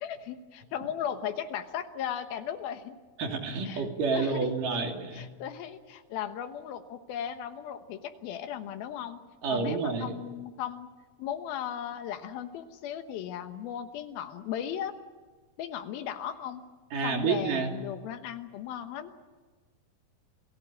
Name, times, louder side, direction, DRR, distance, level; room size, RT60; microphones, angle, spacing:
voice 1, 0.0-3.0 3.6-4.5 5.1-9.2 9.5-10.9 11.2-14.9 15.6-16.6 17.0-19.1, left 9 dB, 85° left, 7 dB, 3.0 m, -36 dB
voice 2, 3.2-5.3 9.4-10.2 16.9-17.8, right 4 dB, 65° right, 3 dB, 4.4 m, -29 dB
29.5 x 19.0 x 8.6 m, 1.3 s
omnidirectional pair, 4.1 m